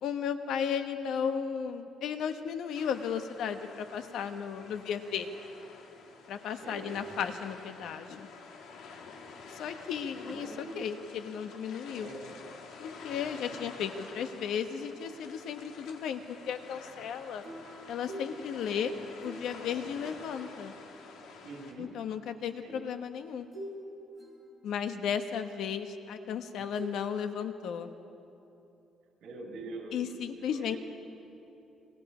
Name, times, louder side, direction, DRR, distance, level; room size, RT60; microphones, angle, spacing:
voice 1, 0.0-5.3 6.3-8.3 9.5-12.1 12.8-17.4 17.9-18.9 19.2-20.7 21.8-23.5 24.6-27.9 29.9-30.8, left 7 dB, 70° left, 8 dB, 1.2 m, -35 dB
sound 1, 2.7-21.7, left 4 dB, 85° left, 2.6 m, -49 dB
voice 2, 10.2-10.9 12.0-12.4 21.4-21.9 22.6-22.8 26.6-26.7 29.2-30.8, right 2 dB, 70° right, 1 dB, 5.0 m, -44 dB
sound 2, 17.4-21.0 22.4-22.5 23.5-23.8 24.1-25.0 26.8-26.9, equal, ahead, 6.2 m, -46 dB
27.5 x 23.0 x 5.0 m, 2.9 s
cardioid pair, 155°, 0 cm